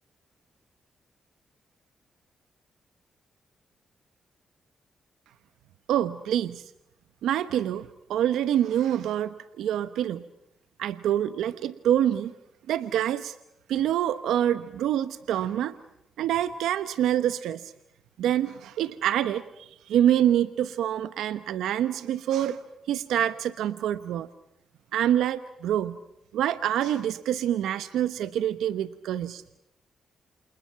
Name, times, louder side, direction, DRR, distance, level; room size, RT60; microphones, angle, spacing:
voice 1, 5.9-6.6 7.2-10.3 10.8-12.3 12.7-13.4 13.7-15.7 16.2-17.7 18.2-22.6 22.9-24.3 24.9-26.0 26.3-29.4, right 11 dB, 90° right, 13 dB, 0.9 m, -26 dB
28.5 x 28.0 x 5.8 m, 0.81 s
cardioid pair, 65°, 0 cm